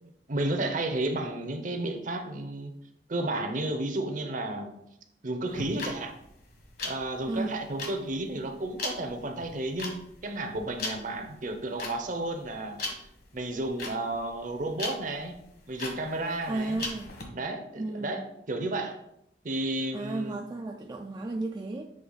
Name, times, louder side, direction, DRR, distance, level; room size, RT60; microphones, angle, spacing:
voice 1, 0.0-2.7 3.1-4.7 5.2-6.1 6.8-10.0 10.2-12.8 13.3-15.3 15.7-16.8 17.3-19.0 19.4-20.4, right 2 dB, 50° right, 6 dB, 0.7 m, -32 dB
sound 1, 5.5-17.2, left 2 dB, 60° left, 1.4 m, -39 dB
voice 2, 7.3-7.6 16.5-17.1 17.8-18.3 19.9-21.9, right 2 dB, 25° right, 2 dB, 0.3 m, -33 dB
7.6 x 3.3 x 4.0 m, 0.78 s
head